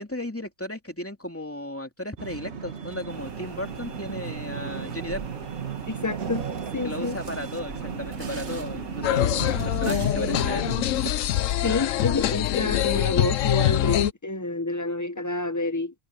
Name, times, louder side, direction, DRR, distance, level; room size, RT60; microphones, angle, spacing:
voice 1, 0.0-5.2 6.8-9.3 9.6-10.7, left 1 dB, 10° left, 2.7 m, -34 dB
sound 1, 2.2-11.1, right 5 dB, 50° right, 1.8 m, -35 dB
sound 2, 3.1-9.8, right 6 dB, 85° right, 2.1 m, -38 dB
voice 2, 5.9-6.4 6.7-7.2 11.6-15.9, left 2 dB, 25° left, 0.4 m, -28 dB
sound 3, 9.0-14.1, left 12 dB, 70° left, 1.0 m, -24 dB
omnidirectional pair, 1.4 m